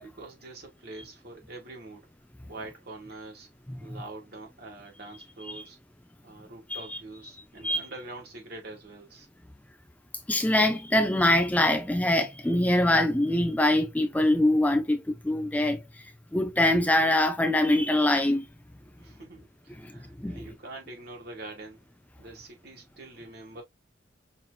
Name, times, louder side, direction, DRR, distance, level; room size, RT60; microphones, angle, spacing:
voice 1, 0.0-2.1 2.5-3.5 3.8-5.8 6.2-9.3 19.0-21.8 22.2-23.6, right 2 dB, 60° right, 1.9 m, -44 dB
voice 2, 10.3-15.8 16.3-18.5 19.8-19.9 20.2-20.5, left 1 dB, 10° left, 0.5 m, -24 dB
5.7 x 2.9 x 2.4 m
head